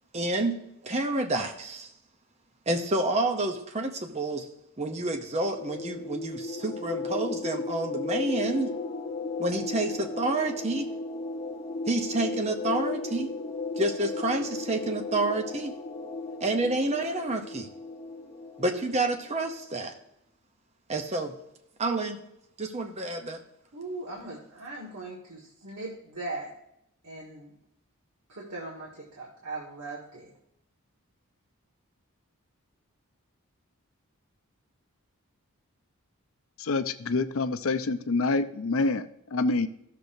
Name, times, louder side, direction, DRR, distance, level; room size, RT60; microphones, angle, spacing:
voice 1, 0.1-1.9 2.7-4.5 4.8-8.8 9.4-10.9 11.9-13.3 13.8-15.7 16.4-17.7 18.6-19.9 20.9-21.3 21.8-22.2 22.6-23.4, right 2 dB, 30° right, 5 dB, 0.7 m, -29 dB
sound 1, 5.2-19.6, left 3 dB, 30° left, 0.9 m, -35 dB
voice 2, 23.7-26.5 27.0-27.5 28.3-30.3, right 2 dB, 85° right, -4 dB, 1.7 m, -39 dB
voice 3, 36.6-39.7, left 3 dB, 65° left, 11 dB, 0.5 m, -27 dB
15.0 x 6.7 x 2.6 m, 0.80 s
head